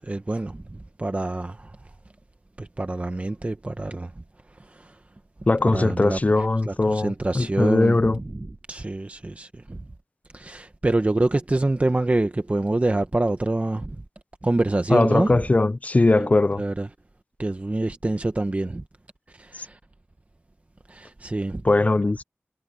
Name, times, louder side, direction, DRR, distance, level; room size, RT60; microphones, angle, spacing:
voice 1, 0.0-1.8 2.6-4.1 4.6-5.0 5.6-9.8 10.3-14.0 14.4-15.4 16.2-16.9 17.4-18.8 19.3-19.8 20.9-21.6, right 2 dB, 35° right, 0.9 m, -26 dB
voice 2, 5.5-8.2 14.9-16.6 21.6-22.2, left 2 dB, 35° left, 0.4 m, -20 dB
wide cardioid pair, 70°, 4 cm